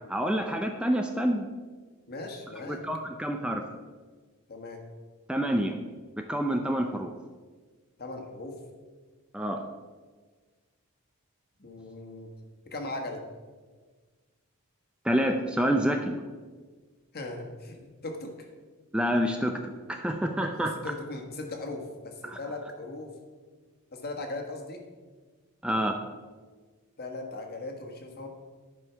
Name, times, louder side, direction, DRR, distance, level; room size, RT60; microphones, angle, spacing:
voice 1, 0.1-1.5 2.5-3.6 5.3-5.8 6.2-7.1 9.3-9.6 15.0-16.2 18.9-20.9 22.2-22.7 25.6-26.0, equal, 5° right, 4 dB, 0.5 m, -28 dB
voice 2, 2.1-2.8 4.5-4.8 8.0-8.6 11.6-12.3 12.7-13.2 17.1-18.5 20.5-23.1 23.9-24.8 27.0-28.3, left 2 dB, 45° left, 3 dB, 1.5 m, -38 dB
11.0 x 5.4 x 5.7 m, 1.4 s
head